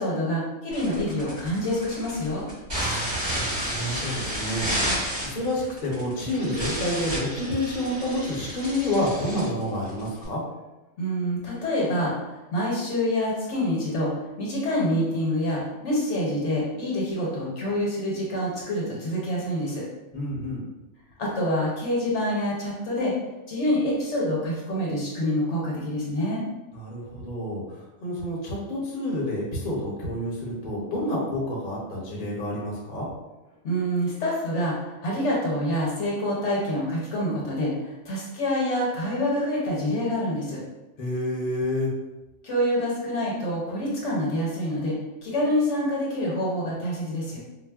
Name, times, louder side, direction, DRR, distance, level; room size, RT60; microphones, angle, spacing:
voice 1, 0.0-2.5 11.0-14.1 14.4-19.9 21.2-23.1 23.5-26.4 33.6-40.6 42.4-47.4, equal, 65° left, -4 dB, 1.0 m, -26 dB
sound 1, 0.7-10.3, equal, 55° right, 1.9 m, -31 dB
voice 2, 2.7-10.4 20.1-20.6 26.7-33.1 41.0-41.9, left 1 dB, 45° left, -4 dB, 0.8 m, -29 dB
3.9 x 2.0 x 2.3 m, 1.0 s
omnidirectional pair, 1.3 m